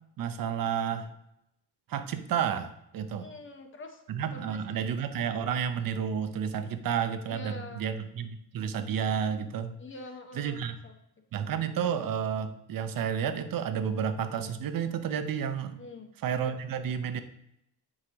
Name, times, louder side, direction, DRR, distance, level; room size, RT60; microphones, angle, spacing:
voice 1, 0.2-1.1 1.9-3.3 4.1-9.7 10.3-10.7 11.3-15.8 16.2-17.2, right 8 dB, 55° right, 9 dB, 0.6 m, -31 dB
voice 2, 3.2-4.0 4.3-4.8 7.3-7.9 9.8-10.9 11.4-11.5 15.8-16.1, left 2 dB, 30° left, 5 dB, 0.8 m, -45 dB
7.7 x 4.8 x 2.8 m, 0.81 s
wide cardioid pair, 160°, 40 cm